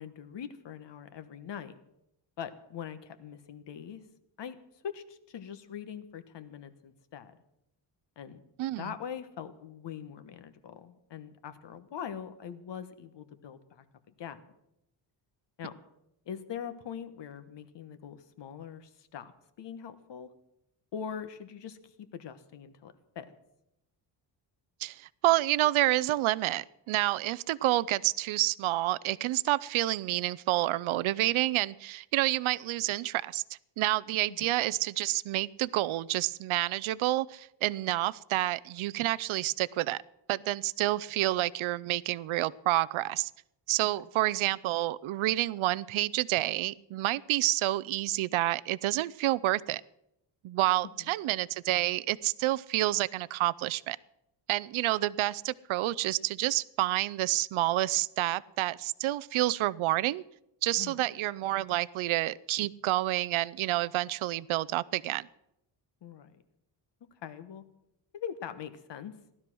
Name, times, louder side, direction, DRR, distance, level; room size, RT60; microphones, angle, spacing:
voice 1, 0.0-1.8 2.4-4.0 4.4-4.6 4.8-7.4 8.2-8.4 8.8-13.8 14.2-14.4 15.6-15.7 16.2-19.3 19.6-20.3 20.9-23.3 34.3-34.5 43.8-43.9 51.0-51.1 60.8-61.0 66.0-66.4 67.2-67.6 68.1-69.1, left 8 dB, 60° left, 11 dB, 1.4 m, -42 dB
voice 2, 8.6-8.9 24.8-33.4 33.8-40.0 40.3-43.3 43.7-49.8 50.4-54.0 54.5-60.2 60.6-65.3, right 16 dB, 80° right, 20 dB, 0.6 m, -29 dB
16.0 x 12.5 x 6.1 m, 0.83 s
cardioid pair, 135°, 47 cm